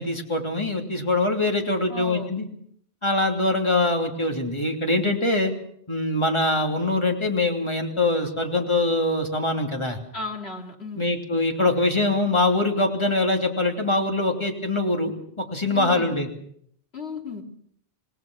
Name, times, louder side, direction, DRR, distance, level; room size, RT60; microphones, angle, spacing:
voice 1, 0.0-2.5 3.0-5.5 5.9-10.0 11.0-16.3, left 2 dB, 25° left, 3 dB, 3.1 m, -23 dB
voice 2, 1.9-2.3 10.1-11.1 15.7-16.1 16.9-17.4, left 4 dB, 70° left, 2 dB, 3.2 m, -35 dB
27.0 x 19.0 x 6.3 m, 0.66 s
omnidirectional pair, 1.1 m